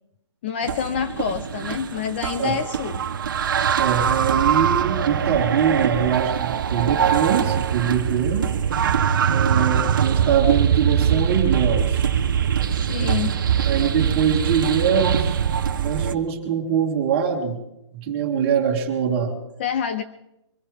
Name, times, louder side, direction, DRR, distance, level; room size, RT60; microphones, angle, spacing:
voice 1, 0.4-3.0 12.7-13.4 19.6-20.0, left 8 dB, 25° left, 10 dB, 0.5 m, -27 dB
sound 1, 0.6-16.1, right 8 dB, 45° right, 0.8 m, -22 dB
voice 2, 3.8-8.5 9.3-12.0 13.0-13.1 13.7-15.4 15.8-17.6 17.9-19.4, right 8 dB, 25° right, 1 dB, 2.2 m, -23 dB
24.0 x 15.5 x 3.5 m, 0.89 s
hypercardioid pair, 155°, 15 cm